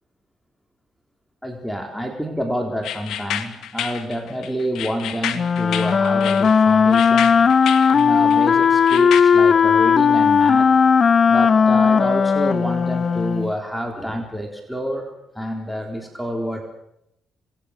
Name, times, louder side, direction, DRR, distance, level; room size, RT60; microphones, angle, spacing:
voice 1, 1.4-7.3 7.9-10.7 11.3-15.1 15.3-16.6, equal, ahead, 2 dB, 4.1 m, -28 dB
sound 1, 2.8-9.2, left 10 dB, 80° left, 2.0 m, -30 dB
Wind instrument woodwind instrument, 5.3-13.5, left 6 dB, 45° left, 0.9 m, -16 dB
26.5 x 20.5 x 6.6 m, 0.80 s
cardioid pair, 90°, 0 cm